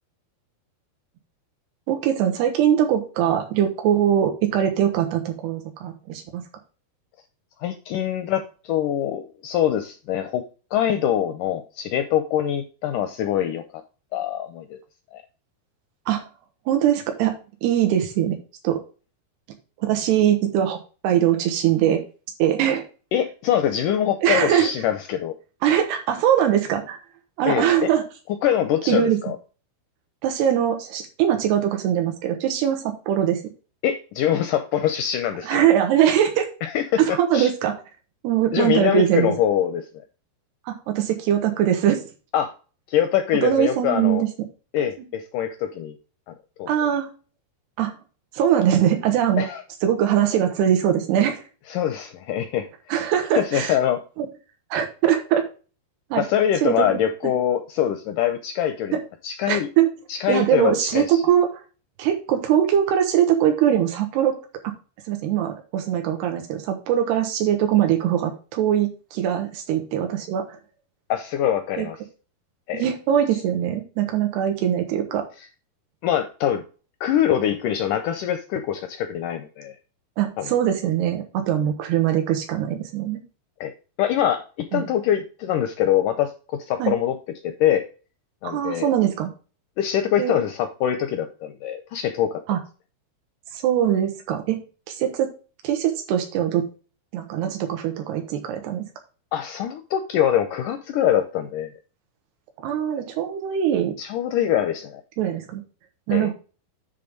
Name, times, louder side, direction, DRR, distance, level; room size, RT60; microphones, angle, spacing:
voice 1, 1.9-6.4 16.1-16.2 16.7-18.4 18.6-18.8 19.8-20.8 21.0-22.0 22.4-22.8 24.2-24.7 25.6-27.0 27.4-28.0 28.9-29.2 30.2-33.4 35.4-36.5 37.0-37.7 38.2-39.3 40.7-42.0 43.4-44.3 46.7-47.1 47.8-47.9 48.3-49.5 49.8-51.4 52.9-53.8 54.2-54.3 54.7-55.4 56.1-56.2 56.6-56.9 57.2-57.3 58.9-59.0 59.5-59.9 60.3-61.6 62.0-64.3 64.6-64.7 65.1-70.6 71.8-71.9 72.7-75.3 80.2-83.2 84.7-84.9 86.8-86.9 88.4-89.3 90.2-90.4 92.5-92.6 93.5-94.6 94.9-95.3 95.6-96.6 97.1-98.9 102.6-103.9 105.2-105.6 106.1-106.3, right 10 dB, 90° right, 4 dB, 3.3 m, -21 dB
voice 2, 7.6-10.4 10.7-13.6 14.1-14.8 15.1-15.2 23.1-25.3 27.5-27.9 28.4-29.4 33.8-35.5 36.6-37.5 38.5-39.9 42.3-42.5 42.9-44.2 44.7-46.0 46.6-46.7 49.4-49.6 51.7-52.7 53.4-54.0 56.2-59.7 60.1-61.2 71.1-72.0 72.7-72.9 76.0-76.6 77.0-79.8 80.4-80.5 83.6-83.7 84.0-87.2 87.4-87.8 88.4-88.9 89.8-92.4 99.3-101.7 104.0-105.0 106.1-106.3, left 10 dB, 85° left, 8 dB, 1.8 m, -24 dB
10.0 x 3.6 x 5.2 m, 0.34 s
omnidirectional pair, 4.6 m